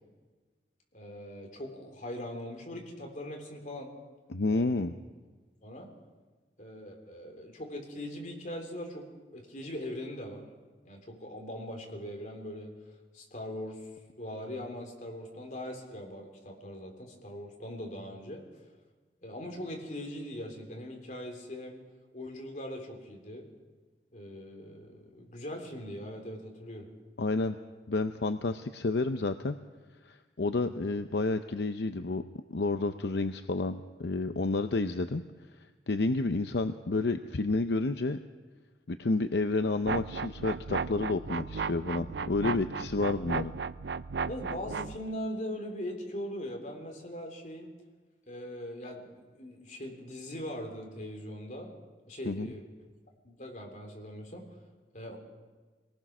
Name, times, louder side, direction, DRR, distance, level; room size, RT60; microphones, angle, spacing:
voice 1, 0.9-3.9 4.5-4.7 5.6-5.9 6.6-10.5 10.8-12.7 13.1-13.9 14.2-18.4 19.2-21.8 22.1-23.5 24.1-26.9 30.5-30.7 44.3-47.7 48.3-51.7 52.1-52.9 53.2-54.5 54.9-55.2, left 1 dB, 45° left, 2 dB, 3.5 m, -41 dB
voice 2, 4.3-4.9 27.2-27.6 27.9-29.6 30.0-32.2 32.5-35.2 35.9-38.2 38.9-43.5 52.2-52.5, left 3 dB, 70° left, 9 dB, 0.7 m, -30 dB
sound 1, 39.8-45.0, right 5 dB, 75° right, 0.5 m, -35 dB
24.5 x 18.5 x 6.1 m, 1.3 s
head